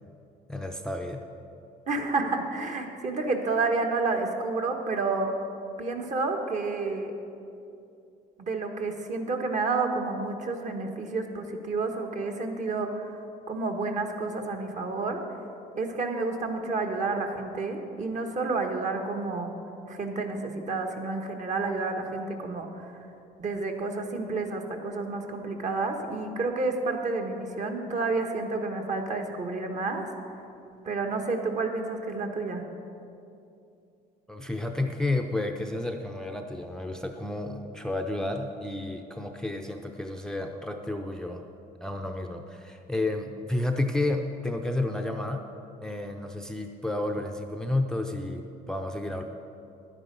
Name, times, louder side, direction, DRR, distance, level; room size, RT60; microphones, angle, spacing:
voice 1, 0.5-1.2 34.3-41.5 41.8-45.4 45.8-49.2, left 2 dB, 5° left, 4 dB, 0.6 m, -31 dB
voice 2, 1.9-5.4 5.8-7.1 8.4-13.2 13.5-15.2 15.8-19.5 19.9-22.9 23.4-30.1 30.8-32.6, right 3 dB, 45° right, 4 dB, 1.3 m, -30 dB
11.0 x 9.8 x 5.3 m, 2.7 s
cardioid pair, 110°, 17 cm